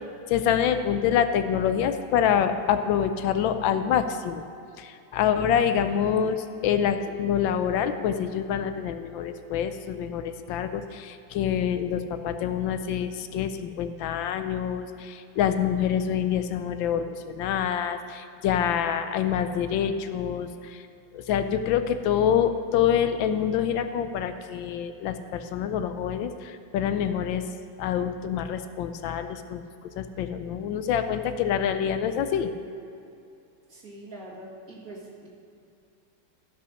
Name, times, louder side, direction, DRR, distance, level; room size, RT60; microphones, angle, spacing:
voice 1, 0.3-4.4 4.8-20.8 21.1-27.4 27.8-29.6 30.0-32.5, left 8 dB, 85° left, 9 dB, 1.4 m, -26 dB
voice 2, 33.7-35.3, right 1 dB, 50° right, -4 dB, 2.4 m, -43 dB
14.0 x 5.6 x 6.4 m, 2.6 s
omnidirectional pair, 2.0 m